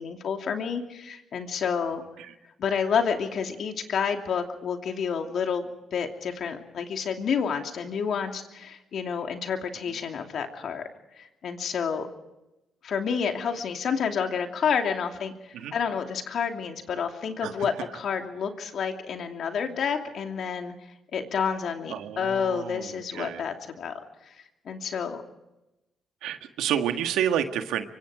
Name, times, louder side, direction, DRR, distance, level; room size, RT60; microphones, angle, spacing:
voice 1, 0.0-2.0 2.6-10.8 11.2-12.1 12.8-20.7 21.1-23.9 24.6-25.2, left 6 dB, 65° left, 4 dB, 2.8 m, -29 dB
voice 2, 21.9-23.4 26.2-27.9, right 9 dB, 90° right, 7 dB, 1.6 m, -29 dB
24.5 x 24.5 x 5.0 m, 0.95 s
cardioid pair, 90°, 0 cm